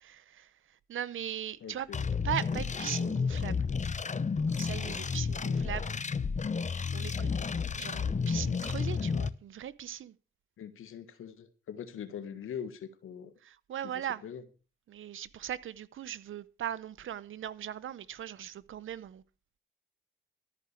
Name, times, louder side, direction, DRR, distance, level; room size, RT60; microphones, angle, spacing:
voice 1, 0.0-1.9 2.2-3.7 4.5-6.0 6.9-7.5 7.7-10.1 13.4-14.2 14.9-19.2, right 10 dB, 70° right, 0.8 m, -39 dB
voice 2, 1.6-2.0 10.6-13.3 13.8-14.4, left 8 dB, 80° left, 1.6 m, -42 dB
sound 1, 1.9-9.3, left 5 dB, 35° left, 0.9 m, -31 dB
13.5 x 5.1 x 8.3 m
cardioid pair, 60°, 21 cm